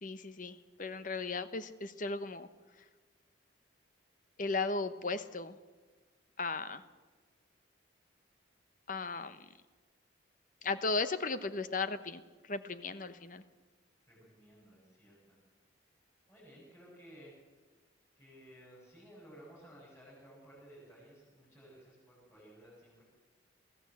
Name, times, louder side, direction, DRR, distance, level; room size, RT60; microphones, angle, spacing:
voice 1, 0.0-2.5 4.4-5.6 6.4-6.8 8.9-9.4 10.6-13.4, left 3 dB, 40° left, 12 dB, 1.0 m, -36 dB
voice 2, 14.1-15.4 16.3-17.3 18.2-23.0, equal, 10° left, -8 dB, 7.8 m, -56 dB
23.0 x 16.0 x 7.9 m, 1.4 s
head